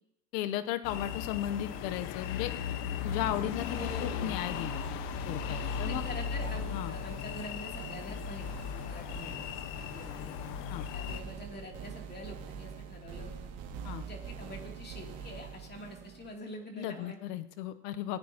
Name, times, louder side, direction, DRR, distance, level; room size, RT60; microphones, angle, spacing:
voice 1, 0.3-2.5 3.0-4.9 5.3-6.0 6.7-6.9 10.7-10.9 13.8-14.0 16.7-18.2, left 12 dB, 90° left, 10 dB, 0.9 m, -35 dB
sound 1, 0.8-11.2, left 7 dB, 65° left, 1.2 m, -37 dB
sound 2, 2.6-16.3, right 6 dB, 70° right, 2.6 m, -46 dB
voice 2, 3.7-4.4 5.4-8.5 8.8-9.3 9.8-10.3 10.8-13.3 14.0-17.2, left 2 dB, 20° left, 1 dB, 2.7 m, -45 dB
19.5 x 9.7 x 2.8 m, 0.81 s
supercardioid pair, 120°, 47 cm